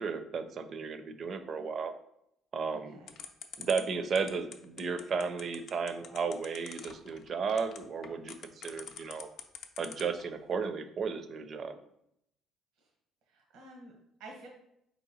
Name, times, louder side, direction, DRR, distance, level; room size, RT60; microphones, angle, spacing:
voice 1, 0.0-1.9 2.5-3.0 3.6-9.3 9.8-11.8, right 5 dB, 50° right, 10 dB, 0.5 m, -34 dB
voice 2, 2.7-3.2 12.8-12.9 13.3-14.5, right 2 dB, 80° right, 0 dB, 0.8 m, -51 dB
sound 1, 3.1-10.2, left 7 dB, 65° left, 0.5 m, -45 dB
4.2 x 2.8 x 4.1 m, 0.76 s
cardioid pair, 105°, 0 cm